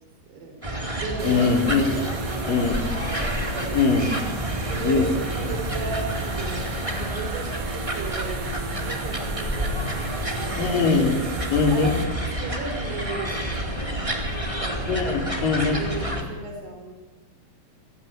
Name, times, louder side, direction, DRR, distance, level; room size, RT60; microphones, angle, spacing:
voice 1, 0.3-2.0 2.3-3.9 4.7-10.8 11.7-15.0 15.7-16.9, right 3 dB, 75° right, 4 dB, 5.9 m, -36 dB
sound 1, 0.6-16.2, equal, 10° right, 3.4 m, -29 dB
voice 2, 1.2-1.9 2.5-2.8 3.7-4.1 4.8-5.1 10.6-11.2 11.5-11.9 14.9-15.8, left 4 dB, 55° left, 3 dB, 5.5 m, -21 dB
sound 2, 1.2-12.0, right 5 dB, 55° right, 4.6 m, -36 dB
28.0 x 23.5 x 9.0 m, 1.2 s
omnidirectional pair, 4.8 m